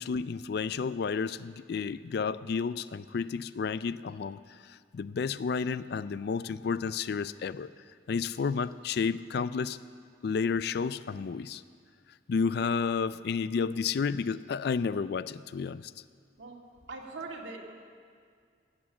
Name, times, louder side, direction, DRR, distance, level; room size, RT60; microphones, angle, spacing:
voice 1, 0.0-7.7 8.1-9.8 10.2-11.6 12.3-15.9, left 5 dB, 60° left, 16 dB, 0.3 m, -31 dB
voice 2, 16.9-17.6, right 3 dB, 90° right, -1 dB, 2.2 m, -41 dB
17.0 x 8.6 x 7.2 m, 2.1 s
head